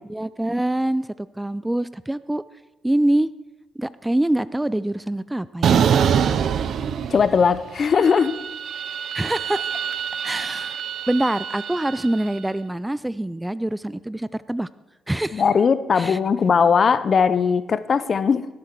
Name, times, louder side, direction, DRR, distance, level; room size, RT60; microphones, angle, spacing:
voice 1, 0.1-2.4 2.8-3.3 3.8-5.8 9.1-9.8 10.2-10.8 11.1-14.7 15.1-15.4 15.9-16.2, right 1 dB, 10° right, 17 dB, 0.3 m, -25 dB
sound 1, 5.6-7.6 7.9-12.2, right 8 dB, 65° right, 0.6 m, -24 dB
voice 2, 7.1-8.4 15.3-18.5, left 6 dB, 45° left, 15 dB, 0.6 m, -19 dB
17.5 x 8.5 x 4.6 m, 1.1 s
cardioid pair, 90°, 0 cm